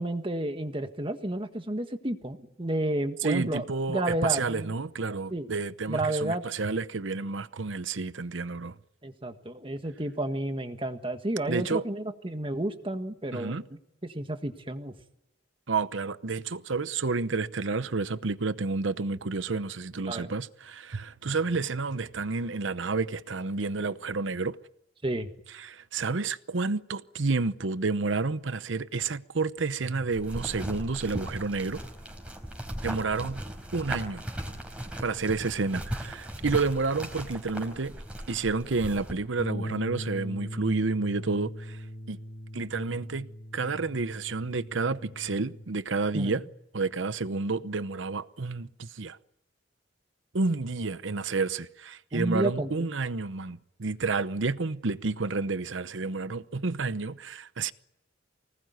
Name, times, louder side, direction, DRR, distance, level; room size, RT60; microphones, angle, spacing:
voice 1, 0.0-4.7 5.3-5.5 5.9-6.4 9.0-14.9 20.1-20.3 25.0-25.3 46.1-46.4 52.1-52.9, right 1 dB, 30° right, 1.6 m, -31 dB
voice 2, 3.2-8.7 11.5-11.8 13.3-13.6 15.7-24.6 25.6-31.8 32.8-33.4 33.7-34.2 35.0-38.0 38.3-42.2 42.5-46.4 46.7-49.2 50.3-57.7, right 4 dB, 85° right, 0.9 m, -30 dB
sound 1, 30.1-39.1, right 1 dB, 5° right, 3.9 m, -37 dB
sound 2, 39.4-45.6, equal, 60° left, 3.4 m, -39 dB
25.0 x 19.5 x 9.4 m
head